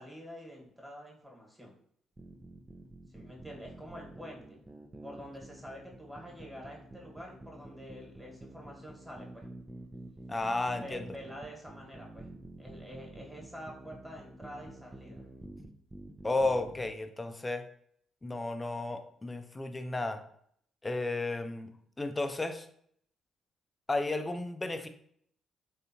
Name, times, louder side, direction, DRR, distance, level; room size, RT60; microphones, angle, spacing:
voice 1, 0.0-1.7 3.1-4.6 5.0-9.4 10.7-12.3 12.6-15.3, equal, 5° right, -1 dB, 1.6 m, -47 dB
sound 1, 2.2-16.9, right 2 dB, 25° right, 0.6 m, -49 dB
voice 2, 10.3-11.1 16.2-17.7 18.2-20.2 20.8-22.7 23.9-24.9, left 2 dB, 25° left, 7 dB, 0.6 m, -33 dB
3.7 x 3.3 x 2.9 m, 0.66 s
hypercardioid pair, 45°, 0 cm